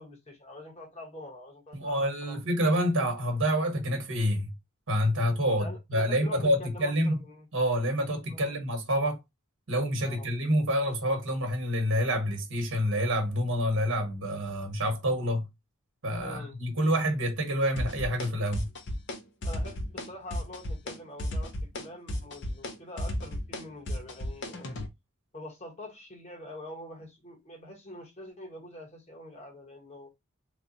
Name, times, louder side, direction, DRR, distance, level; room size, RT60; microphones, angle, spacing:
voice 1, 0.0-2.4 5.6-7.5 8.3-8.5 10.0-10.3 16.2-16.6 19.4-24.8 25.3-30.1, left 1 dB, 30° left, 1.3 m, -45 dB
voice 2, 1.7-4.5 4.9-7.2 7.5-9.2 9.7-15.4 16.0-18.7, equal, 60° right, 1.2 m, -27 dB
sound 1, 17.8-18.3 18.5-19.2 19.4-20.1 20.3-20.9 21.2-24.9, left 1 dB, 55° left, 0.7 m, -33 dB
3.2 x 2.3 x 4.0 m
head